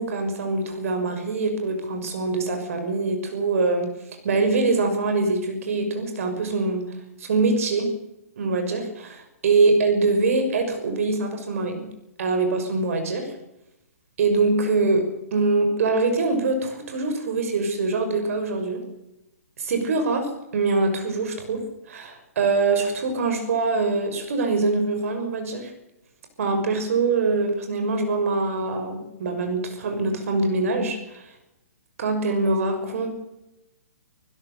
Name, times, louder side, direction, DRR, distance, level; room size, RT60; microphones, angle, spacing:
voice 1, 0.0-3.9 4.2-6.8 7.2-7.9 8.4-11.9 12.2-13.3 14.2-15.0 15.3-18.8 19.6-21.6 21.9-25.7 26.4-31.2 32.0-33.1, right 3 dB, 60° right, 6 dB, 5.9 m, -23 dB
26.0 x 16.5 x 6.8 m, 0.89 s
hypercardioid pair, 135°, 9 cm